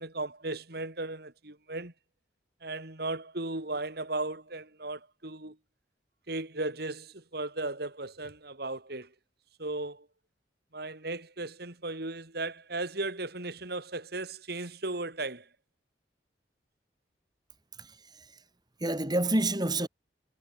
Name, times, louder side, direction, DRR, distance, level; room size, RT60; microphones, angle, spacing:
voice 1, 0.0-1.9 2.6-5.6 6.3-9.1 9.6-10.1 10.7-15.5, right 2 dB, 60° right, 3.6 m, -36 dB
voice 2, 17.8-18.3 18.8-19.9, right 1 dB, 25° right, 4.5 m, -29 dB
head